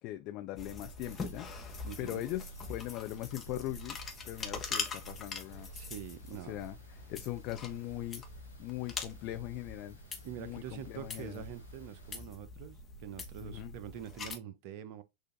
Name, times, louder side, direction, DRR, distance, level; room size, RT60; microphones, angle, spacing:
voice 1, 0.0-1.5 2.0-4.0 4.2-5.7 6.4-6.8 7.1-8.2 8.6-10.0 10.4-11.4 13.4-13.7, left 15 dB, 40° left, 0.4 m, -40 dB
sound 1, 0.6-14.4, left 4 dB, 20° left, 0.9 m, -43 dB
sound 2, 1.0-12.2, right 1 dB, 90° left, 1.2 m, -61 dB
voice 2, 1.8-2.2 5.7-6.6 10.2-15.0, right 10 dB, 45° right, 0.6 m, -45 dB
6.5 x 2.5 x 2.5 m
figure-of-eight pair, 90°, 0 cm